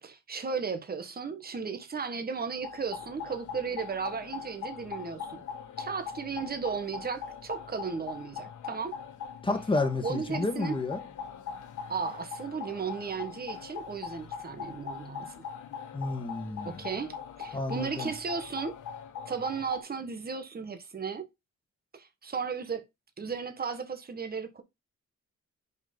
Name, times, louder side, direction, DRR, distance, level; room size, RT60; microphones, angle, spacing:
voice 1, 0.0-5.4 5.8-9.0 10.0-10.8 11.9-15.5 16.6-18.7 19.3-21.3 21.9-22.8 23.2-24.6, right 5 dB, 30° right, 1.3 m, -35 dB
sound 1, 2.5-19.8, left 7 dB, 85° left, 1.5 m, -41 dB
voice 2, 9.4-11.0 15.9-16.8 17.5-18.1, left 2 dB, 15° left, 1.5 m, -30 dB
5.6 x 4.6 x 5.2 m
cardioid pair, 95°, 30 cm